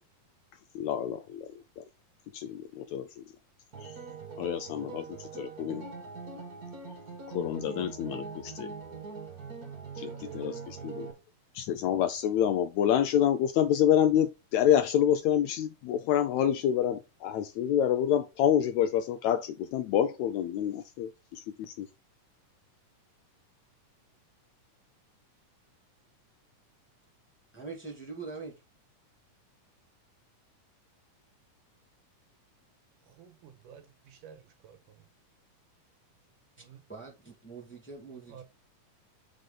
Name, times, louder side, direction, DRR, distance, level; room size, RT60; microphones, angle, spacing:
voice 1, 0.5-1.9 2.3-3.3 3.8-4.0 4.4-5.9 7.3-8.7 10.0-11.1 11.5-21.9, left 10 dB, 80° left, 1.7 m, -28 dB
sound 1, 3.7-11.1, right 5 dB, 35° right, 2.1 m, -42 dB
voice 2, 10.0-11.2 33.0-35.1 36.6-36.8 38.3-38.4, right 9 dB, 80° right, 2.9 m, -52 dB
voice 3, 27.5-28.6 36.9-38.4, right 4 dB, 5° left, 1.3 m, -43 dB
7.7 x 5.1 x 3.9 m
omnidirectional pair, 3.7 m